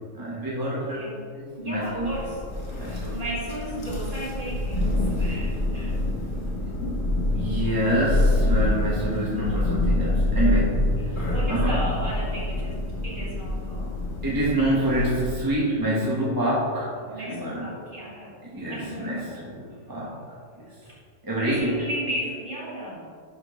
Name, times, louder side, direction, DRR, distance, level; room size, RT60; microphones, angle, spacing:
voice 1, 0.1-1.0 1.3-2.1 2.8-3.2 6.6-6.8 7.3-11.9 14.2-17.7 18.4-20.2 21.2-21.9, right 1 dB, 15° right, -7 dB, 1.2 m, -27 dB
voice 2, 0.8-1.2 1.6-2.4 2.8-6.0 11.0-13.9 17.1-18.3 18.7-19.3 20.8-21.0 21.4-23.1, right 1 dB, 40° right, -6 dB, 2.0 m, -35 dB
Thunder, 1.9-15.6, left 1 dB, 80° left, 1.8 m, -26 dB
11.5 x 4.4 x 3.1 m, 2.2 s
omnidirectional pair, 1.3 m